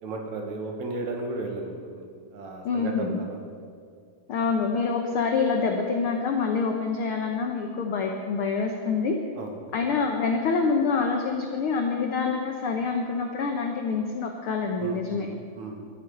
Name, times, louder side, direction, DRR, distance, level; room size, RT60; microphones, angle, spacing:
voice 1, 0.0-2.0 2.3-3.4 9.4-9.8 14.8-15.8, right 3 dB, 65° right, 2 dB, 2.8 m, -34 dB
voice 2, 2.6-3.2 4.3-9.2 9.7-15.3, left 5 dB, 75° left, 3 dB, 1.2 m, -26 dB
12.0 x 9.4 x 7.9 m, 2.2 s
omnidirectional pair, 3.7 m